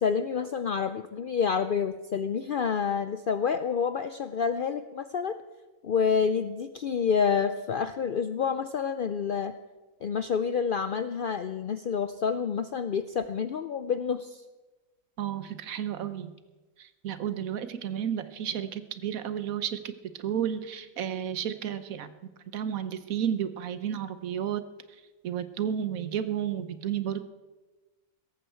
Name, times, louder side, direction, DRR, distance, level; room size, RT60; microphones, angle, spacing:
voice 1, 0.0-5.4 5.8-9.5 10.0-14.4, left 6 dB, 65° left, 11 dB, 0.5 m, -28 dB
voice 2, 15.2-16.3 16.8-22.1 22.5-24.6 24.9-27.2, right 9 dB, 80° right, 12 dB, 1.3 m, -32 dB
17.0 x 14.5 x 4.5 m, 1.2 s
omnidirectional pair, 1.5 m